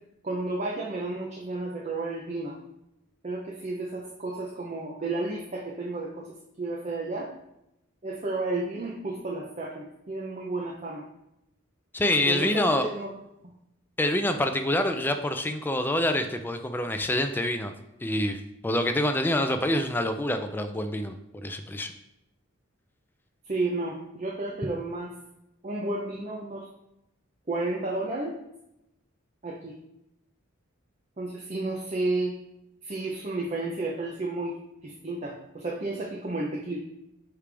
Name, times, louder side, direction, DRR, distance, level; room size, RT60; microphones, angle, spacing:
voice 1, 0.2-2.6 3.2-6.3 6.6-7.3 8.0-11.0 12.2-13.1 13.4-13.5 23.5-25.1 25.6-26.7 27.5-28.4 29.4-29.8 31.2-32.3 32.8-34.6 34.8-36.8, right 2 dB, 35° right, -2 dB, 0.7 m, -32 dB
voice 2, 11.9-12.9 14.0-17.7 18.0-21.2 21.4-21.9, left 1 dB, 10° left, 7 dB, 0.3 m, -26 dB
9.7 x 3.4 x 3.4 m, 0.86 s
head